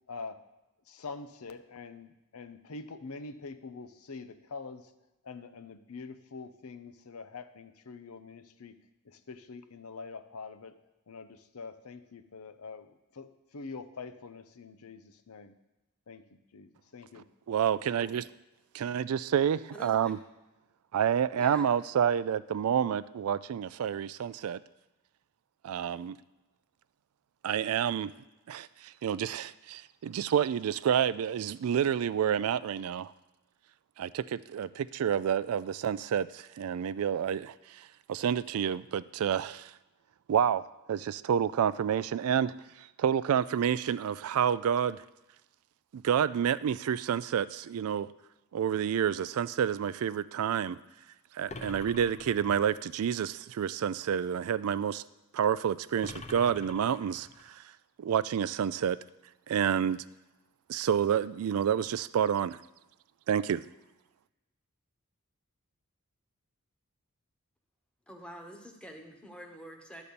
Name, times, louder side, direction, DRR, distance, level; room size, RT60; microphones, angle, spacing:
voice 1, 0.1-0.4 0.9-4.9 5.2-8.8 9.0-10.8 11.1-15.5 16.1-17.3 17.9-18.3, left 4 dB, 75° left, 10 dB, 0.7 m, -45 dB
voice 2, 17.2-18.2 18.7-20.2 20.9-24.6 25.6-26.2 27.4-28.1 28.5-33.1 34.0-39.7 40.3-40.6 40.9-42.5 42.8-45.0 45.9-48.1 48.5-50.8 51.3-55.0 55.3-57.6 58.0-59.0 59.5-60.0 60.7-62.6 63.3-63.6, right 8 dB, 75° right, 16 dB, 0.3 m, -29 dB
voice 3, 19.7-20.1 21.3-21.7 68.1-70.0, equal, 5° left, 3 dB, 1.1 m, -47 dB
sound 1, 51.5-52.9 56.0-57.5, left 3 dB, 30° left, 0.6 m, -46 dB
11.5 x 4.1 x 6.8 m, 1.0 s
head